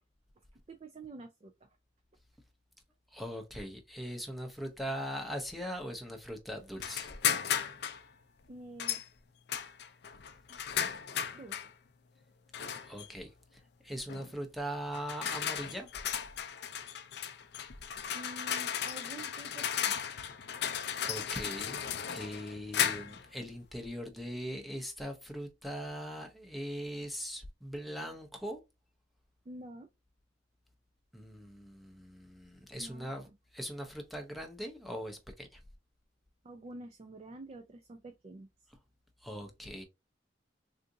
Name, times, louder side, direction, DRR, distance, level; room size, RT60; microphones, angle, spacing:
voice 1, 0.7-1.7 8.5-9.0 10.5-10.6 11.3-11.7 18.1-20.0 29.5-29.9 32.7-33.3 36.4-38.5, right 2 dB, 35° right, 0.4 m, -48 dB
voice 2, 3.1-7.1 12.8-15.9 21.0-21.8 22.0-28.6 31.1-35.6 39.2-39.8, equal, ahead, 0.7 m, -41 dB
sound 1, 6.8-8.0 8.8-9.1 9.5-11.7 12.5-13.1 14.1-14.3 14.9-23.3, left 9 dB, 60° left, 0.4 m, -35 dB
3.8 x 2.5 x 2.6 m
head